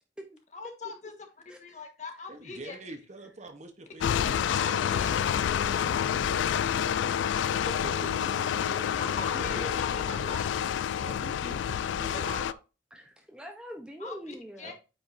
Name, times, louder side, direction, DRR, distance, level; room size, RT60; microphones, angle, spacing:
voice 1, 0.5-1.1 1.6-2.7 4.5-5.4 8.9-10.5 12.1-12.5 14.0-14.1 14.6-14.7, left 3 dB, 40° left, 1.4 m, -41 dB
voice 2, 1.5-1.8 2.5-2.6 3.2-3.3 7.8-7.9 8.2-8.5 12.9-14.7, equal, 5° right, 0.8 m, -44 dB
voice 3, 2.3-4.9 7.6-10.4 11.0-12.3 14.6-14.7, right 2 dB, 40° right, 1.0 m, -45 dB
sound 1, 4.0-12.5, left 8 dB, 85° left, 0.3 m, -28 dB
8.7 x 5.2 x 2.6 m
head